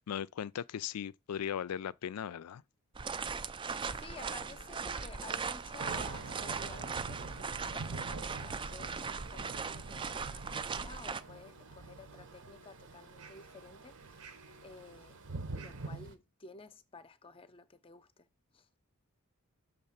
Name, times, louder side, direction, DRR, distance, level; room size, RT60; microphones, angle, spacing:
voice 1, 0.0-2.6, left 9 dB, 90° left, 0.4 m, -38 dB
sound 1, 2.9-11.2, right 5 dB, 20° right, 0.3 m, -39 dB
sound 2, 3.7-15.9, right 4 dB, 85° right, 1.3 m, -56 dB
voice 2, 3.9-14.3 14.6-15.2 15.5-18.3 18.5-18.7, left 3 dB, 25° left, 0.6 m, -53 dB
Thunder / Rain, 5.8-16.1, right 3 dB, 55° right, 0.8 m, -46 dB
6.5 x 3.7 x 5.7 m
head